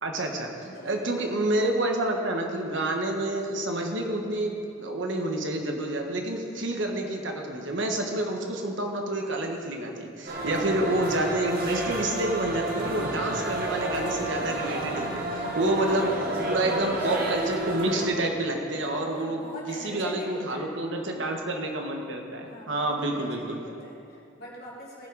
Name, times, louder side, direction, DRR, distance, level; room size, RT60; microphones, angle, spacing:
voice 1, 0.0-16.1 16.5-19.4 19.7-23.6, right 1 dB, 70° right, 3 dB, 1.3 m, -28 dB
voice 2, 0.7-1.1 15.7-16.1 18.7-20.7 22.5-25.1, left 1 dB, 55° left, -6 dB, 3.1 m, -42 dB
sound 1, 10.3-18.1, right 1 dB, 50° right, 1.6 m, -31 dB
17.0 x 6.1 x 4.8 m, 2.6 s
head